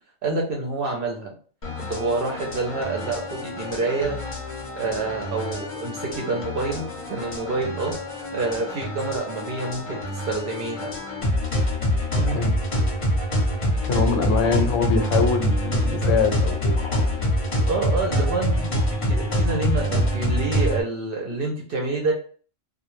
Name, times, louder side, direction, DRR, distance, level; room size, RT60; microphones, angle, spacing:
voice 1, 0.2-1.3 1.8-4.2 4.7-10.9 17.7-22.1, right 3 dB, 60° right, 0 dB, 0.6 m, -27 dB
sound 1, 1.6-20.8, equal, 40° left, 0.5 m, -25 dB
voice 2, 12.1-12.6 13.8-16.8, left 4 dB, 80° left, 4 dB, 0.9 m, -23 dB
2.1 x 2.1 x 3.0 m, 0.43 s
omnidirectional pair, 1.3 m